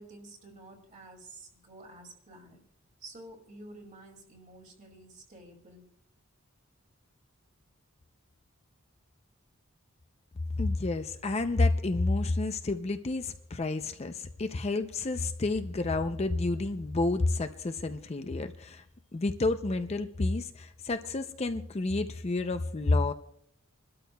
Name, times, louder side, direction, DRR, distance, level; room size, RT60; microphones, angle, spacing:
voice 1, 0.0-2.6 3.0-5.9, right 2 dB, 40° right, 3 dB, 2.3 m, -50 dB
voice 2, 10.6-18.8 19.1-23.1, left 2 dB, 30° left, 9 dB, 0.5 m, -30 dB
27.5 x 12.5 x 2.3 m, 0.68 s
head